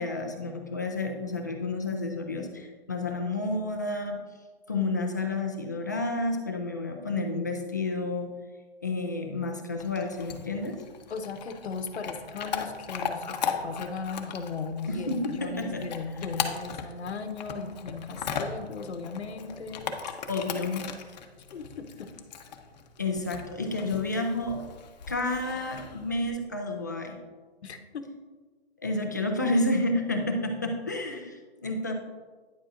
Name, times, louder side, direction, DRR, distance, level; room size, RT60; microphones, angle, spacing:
voice 1, 0.0-4.2 4.7-8.3 8.8-10.8 14.9-15.8 20.3-20.8 23.0-24.6 25.1-27.2 28.8-31.9, left 2 dB, 20° left, 3 dB, 0.3 m, -30 dB
Chewing mastication / Dog, 9.8-26.3, left 6 dB, 40° left, 0.8 m, -38 dB
voice 2, 11.1-19.9 21.5-22.1 27.6-28.1, left 4 dB, 85° left, 8 dB, 0.9 m, -37 dB
9.9 x 7.6 x 2.5 m, 1.4 s
hypercardioid pair, 160°, 32 cm